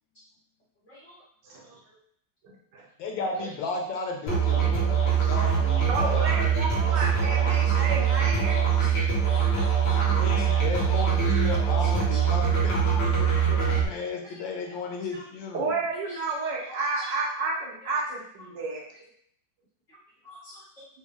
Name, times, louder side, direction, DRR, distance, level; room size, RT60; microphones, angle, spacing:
voice 1, 0.9-1.2 1.6-1.8 7.1-7.2 7.6-7.7 8.5-10.0 10.3-11.5 11.8-12.3 14.2-14.8 15.1-15.2 16.1-16.2 16.7-17.1 19.9-20.0 20.2-20.9, equal, 50° left, -8 dB, 1.2 m, -48 dB
voice 2, 3.0-6.5 10.0-15.7, left 3 dB, 85° left, 1 dB, 1.4 m, -34 dB
Musical instrument, 4.3-13.9, right 7 dB, 65° left, 1.6 m, -23 dB
voice 3, 5.9-8.7 15.5-18.8, right 3 dB, 75° right, -3 dB, 1.4 m, -30 dB
3.8 x 2.1 x 3.5 m, 0.64 s
omnidirectional pair, 2.0 m